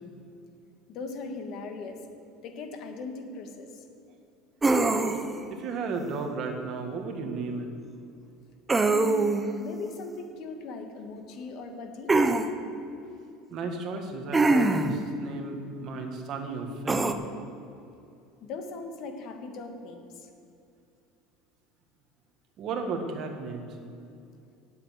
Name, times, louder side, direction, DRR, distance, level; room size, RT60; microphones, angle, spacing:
voice 1, 0.9-2.0 2.4-3.8 8.8-12.1 18.4-20.3, left 3 dB, 50° left, 5 dB, 1.5 m, -39 dB
sound 1, 4.6-5.4 8.7-9.5 12.1-12.5 14.3-15.0 16.9-17.1, right 3 dB, 15° right, 0.6 m, -23 dB
voice 2, 5.5-7.7 13.5-17.1 22.6-23.8, right 4 dB, 45° right, 4 dB, 1.6 m, -34 dB
8.2 x 7.9 x 8.9 m, 2.6 s
cardioid pair, 135°, 0 cm